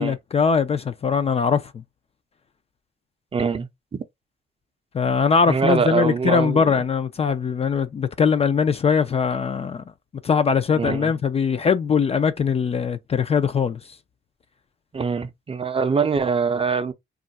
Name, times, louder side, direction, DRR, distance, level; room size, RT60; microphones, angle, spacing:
voice 1, 0.0-1.8 4.9-9.8 10.2-13.8, left 6 dB, 30° left, 0.4 m, -21 dB
voice 2, 3.3-4.0 5.5-6.7 10.8-11.1 14.9-16.9, right 5 dB, 30° right, 0.5 m, -23 dB
2.4 x 2.1 x 3.9 m
cardioid pair, 90°, 20 cm